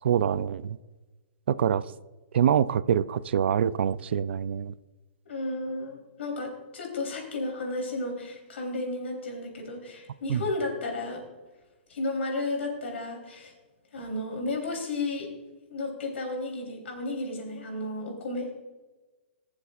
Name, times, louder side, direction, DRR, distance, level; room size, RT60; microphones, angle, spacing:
voice 1, 0.0-0.8 1.5-1.8 2.3-4.7 10.3-10.4, right 9 dB, 70° right, 17 dB, 0.4 m, -25 dB
voice 2, 5.2-11.2 11.9-13.5 13.9-15.3 15.7-18.5, left 2 dB, 85° left, 1 dB, 3.4 m, -33 dB
19.0 x 7.1 x 2.4 m, 1.2 s
hypercardioid pair, 170°, 6 cm